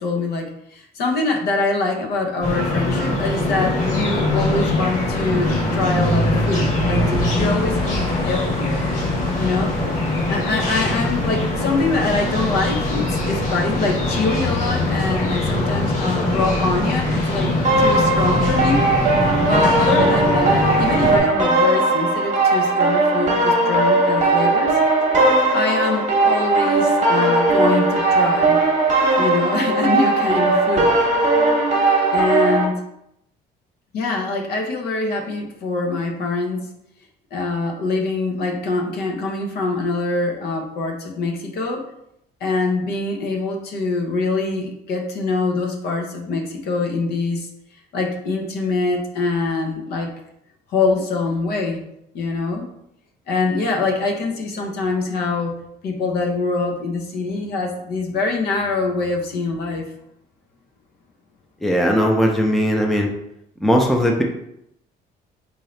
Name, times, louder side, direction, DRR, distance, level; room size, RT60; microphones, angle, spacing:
voice 1, 0.0-8.8 9.4-9.7 10.3-18.9 19.5-24.8 25.5-28.6 29.2-30.9 32.1-32.8 33.9-36.7 37.3-41.8 42.4-47.5 47.9-50.1 50.7-51.8 52.1-52.7 53.3-55.5 55.8-59.9, left 3 dB, 70° left, 2 dB, 0.8 m, -24 dB
sound 1, 2.4-21.2, left 1 dB, 45° left, 1.5 m, -22 dB
sound 2, 6.9-12.2, left 2 dB, 85° left, 1.3 m, -32 dB
sound 3, 17.6-32.7, right 2 dB, 45° right, 0.9 m, -18 dB
voice 2, 61.6-63.1 63.6-64.2, equal, ahead, 0 dB, 0.5 m, -18 dB
3.8 x 2.8 x 3.2 m, 0.78 s
cardioid pair, 110°, 17 cm